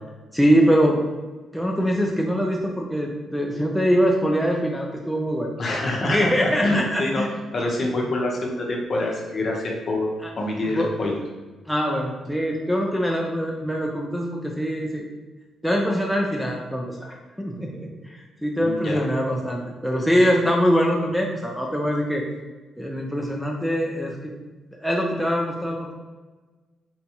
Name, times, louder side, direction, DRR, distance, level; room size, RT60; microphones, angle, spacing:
voice 1, 0.3-1.0 1.5-5.5 6.0-7.3 10.2-10.3 10.6-10.9 11.7-15.0 15.6-22.2 22.8-24.3 24.7-25.9, equal, ahead, -1 dB, 0.4 m, -23 dB
voice 2, 5.6-7.2 7.5-10.1 10.4-11.2 18.6-19.0, left 2 dB, 45° left, -1 dB, 0.8 m, -26 dB
3.9 x 2.2 x 2.9 m, 1.3 s
cardioid pair, 90°, 0 cm